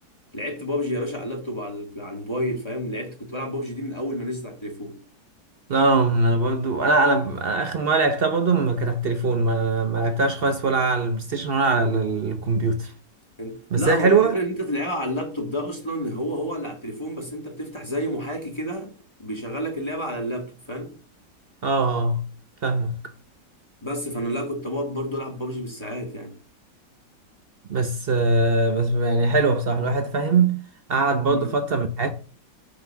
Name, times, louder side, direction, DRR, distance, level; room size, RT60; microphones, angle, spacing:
voice 1, 0.3-5.0 13.4-18.9 19.2-20.9 23.8-26.3 31.3-31.5, equal, 15° left, 1.6 m, -30 dB
voice 2, 5.7-12.9 13.7-14.3 21.6-22.2 22.6-23.0 27.7-30.6 30.9-32.1, right 3 dB, 55° right, 0.6 m, -21 dB
5.9 x 5.4 x 6.8 m
omnidirectional pair, 1.9 m